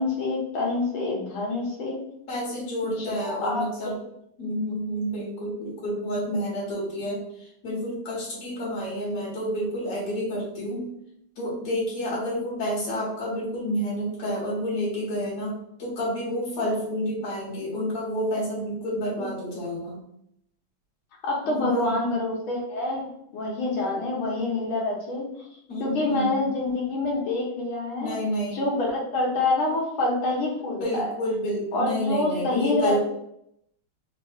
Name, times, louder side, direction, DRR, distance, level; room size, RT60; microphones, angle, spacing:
voice 1, 0.0-2.0 2.8-3.6 16.6-16.7 19.2-19.3 21.2-25.3 25.8-28.2 28.5-31.1 31.7-33.0, left 2 dB, 75° left, -2 dB, 2.0 m, -27 dB
voice 2, 2.3-4.0 4.4-10.9 11.4-20.0 21.5-22.0 25.7-26.5 28.0-28.6 30.8-33.0, equal, 55° left, -6 dB, 2.2 m, -29 dB
4.3 x 2.6 x 3.5 m, 0.75 s
omnidirectional pair, 2.3 m